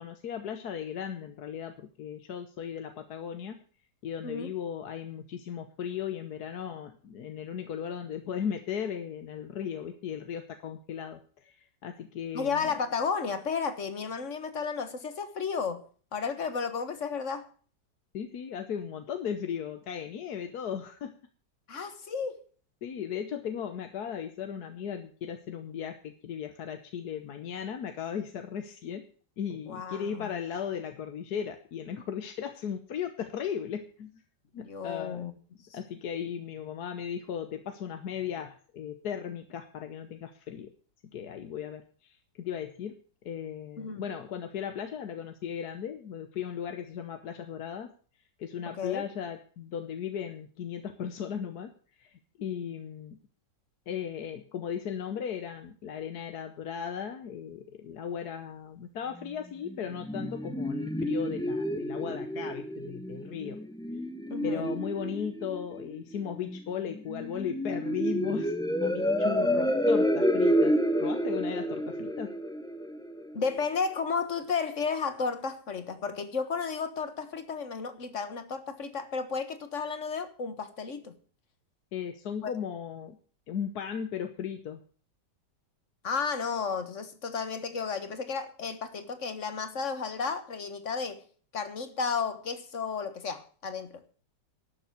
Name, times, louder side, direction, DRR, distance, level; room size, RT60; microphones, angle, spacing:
voice 1, 0.0-3.6 4.0-12.7 18.1-21.1 22.8-29.1 29.4-34.2 34.5-35.2 35.7-40.7 41.1-43.0 43.2-47.9 48.4-53.2 53.9-63.6 64.4-68.5 68.8-72.3 81.9-83.2 83.5-84.8, left 8 dB, 65° left, 1.5 m, -36 dB
voice 2, 12.3-15.8 16.1-17.5 21.7-22.4 29.7-30.3 34.6-35.3 43.8-44.0 48.7-49.0 64.3-64.7 73.3-81.1 82.4-82.5 86.0-91.2 91.5-94.0, left 5 dB, 45° left, 1.7 m, -33 dB
sound 1, 59.6-73.6, equal, 5° left, 0.3 m, -29 dB
12.0 x 7.0 x 9.3 m
omnidirectional pair, 1.9 m